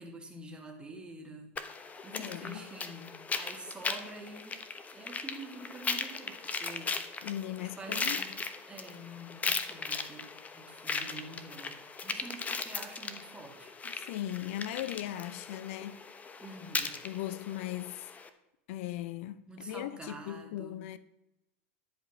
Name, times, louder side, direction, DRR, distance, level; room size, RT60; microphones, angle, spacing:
voice 1, 0.0-4.6 4.9-8.4 8.7-13.7 16.4-17.0 19.5-20.8, right 2 dB, 15° right, 2.6 m, -47 dB
sound 1, 1.6-18.3, left 4 dB, 20° left, 1.0 m, -38 dB
voice 2, 2.1-2.7 7.2-8.2 13.8-16.0 17.0-18.1 18.7-21.0, left 13 dB, 70° left, 0.5 m, -38 dB
11.0 x 5.2 x 7.3 m
hypercardioid pair, 105°, 7 cm